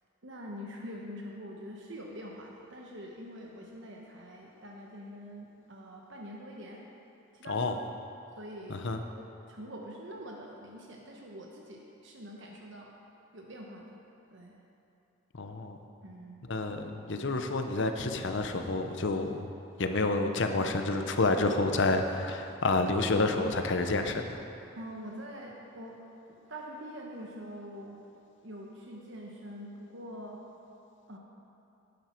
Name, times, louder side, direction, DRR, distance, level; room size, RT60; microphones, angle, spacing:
voice 1, 0.2-6.8 7.3-7.9 8.4-8.9 9.2-12.9 13.3-14.0 14.3-14.5 16.0-16.4 24.8-28.0 28.4-30.4 31.1-31.2, equal, 60° right, -1 dB, 1.1 m, -45 dB
voice 2, 15.4-15.8 16.5-19.5 19.8-24.4, left 2 dB, 55° left, 6 dB, 0.7 m, -29 dB
12.0 x 9.6 x 4.5 m, 2.8 s
head